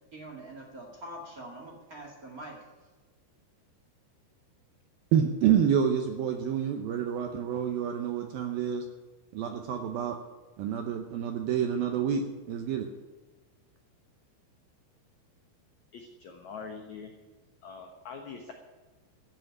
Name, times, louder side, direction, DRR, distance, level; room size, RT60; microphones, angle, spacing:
voice 1, 0.1-2.6, right 1 dB, 35° right, -1 dB, 1.5 m, -44 dB
voice 2, 5.1-8.8 9.3-10.2 10.6-12.9, right 8 dB, 75° right, 5 dB, 2.2 m, -28 dB
voice 3, 15.9-17.1 17.6-18.5, left 5 dB, 75° left, 3 dB, 1.7 m, -43 dB
13.5 x 7.7 x 9.7 m, 1.3 s
omnidirectional pair, 5.1 m